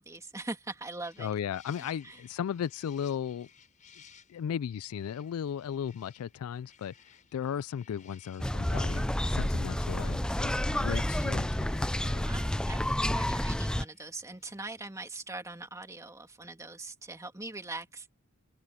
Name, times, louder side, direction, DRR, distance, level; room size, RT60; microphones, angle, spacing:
voice 1, 0.0-1.3 2.0-2.2 12.2-18.1, right 2 dB, 15° right, 2.4 m, -42 dB
sound 1, 1.0-15.1, left 7 dB, 35° left, 5.6 m, -61 dB
voice 2, 1.2-3.5 4.3-12.2, left 8 dB, 85° left, 0.3 m, -36 dB
sound 2, 8.4-13.8, left 1 dB, 5° left, 0.4 m, -30 dB
open air
head